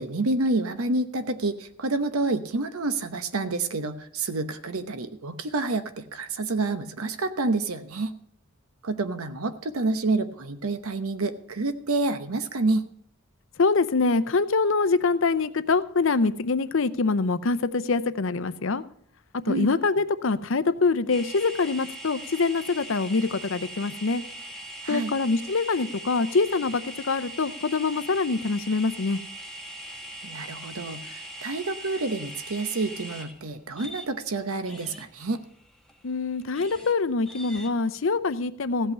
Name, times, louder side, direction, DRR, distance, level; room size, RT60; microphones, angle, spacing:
voice 1, 0.0-8.1 8.8-12.9 19.5-19.7 24.8-25.1 30.2-35.4, right 3 dB, 80° right, 11 dB, 1.0 m, -28 dB
voice 2, 13.6-18.8 19.5-24.2 24.9-29.2 36.0-38.9, left 4 dB, 60° left, 14 dB, 0.6 m, -24 dB
sound 1, 21.1-34.4 34.7-36.9 37.3-37.7, right 1 dB, 5° left, 1.2 m, -41 dB
15.5 x 5.5 x 8.5 m, 0.64 s
head